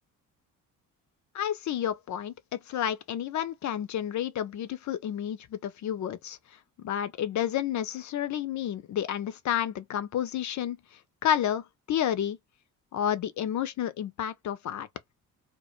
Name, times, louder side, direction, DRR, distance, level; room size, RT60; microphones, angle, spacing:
voice 1, 1.3-6.4 6.8-12.4 12.9-14.9, left 10 dB, 40° left, 0.5 m, -30 dB
2.1 x 2.1 x 2.9 m
hypercardioid pair, 45°, 46 cm